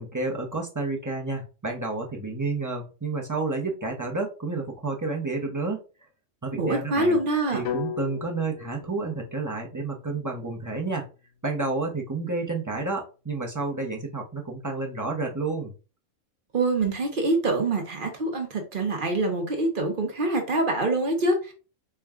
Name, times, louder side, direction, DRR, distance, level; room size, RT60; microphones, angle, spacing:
voice 1, 0.0-5.8 6.4-7.2 7.5-11.1 11.4-15.7, right 3 dB, 20° right, 0 dB, 0.5 m, -30 dB
voice 2, 6.6-7.6 16.5-21.5, right 2 dB, 45° right, 3 dB, 0.9 m, -25 dB
sound 1, 7.6-11.7, left 9 dB, 65° left, 0.8 m, -38 dB
4.4 x 2.2 x 3.6 m, 0.34 s
omnidirectional pair, 1.3 m